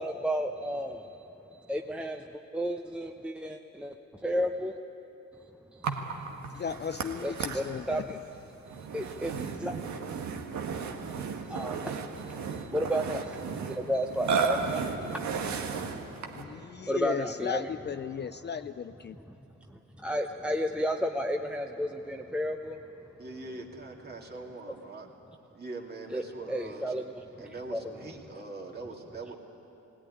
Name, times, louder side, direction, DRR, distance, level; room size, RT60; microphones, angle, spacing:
voice 1, 0.0-3.9 4.2-4.8 5.7-6.0 7.2-8.2 8.7-9.8 11.1-15.9 16.3-16.5 16.8-17.7 19.7-22.8 26.1-26.2 26.5-27.0 27.7-27.8, equal, 5° right, 3 dB, 0.8 m, -33 dB
Burping eructation, 5.8-16.5, right 5 dB, 70° right, 1.6 m, -34 dB
voice 2, 6.5-8.1 16.3-19.2, left 7 dB, 35° left, 11 dB, 0.5 m, -36 dB
voice 3, 23.2-25.1 25.5-26.9 27.4-29.4, right 3 dB, 30° right, 0 dB, 2.7 m, -42 dB
18.5 x 17.5 x 9.9 m, 3.0 s
cardioid pair, 90°, 30 cm